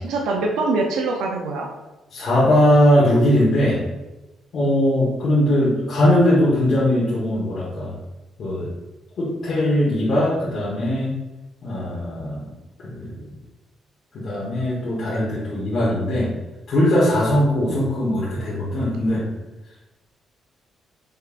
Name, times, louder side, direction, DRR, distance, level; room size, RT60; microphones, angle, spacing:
voice 1, 0.0-1.7 4.6-4.8 17.6-17.8, right 3 dB, 85° right, 1 dB, 0.5 m, -24 dB
voice 2, 2.1-3.8 4.5-7.9 8.4-8.7 9.2-11.2 11.6-12.4 12.8-13.2 14.1-16.3 16.7-19.2, left 1 dB, 60° left, -8 dB, 1.3 m, -20 dB
5.2 x 3.4 x 2.6 m, 1.0 s
cardioid pair, 90°, 0 cm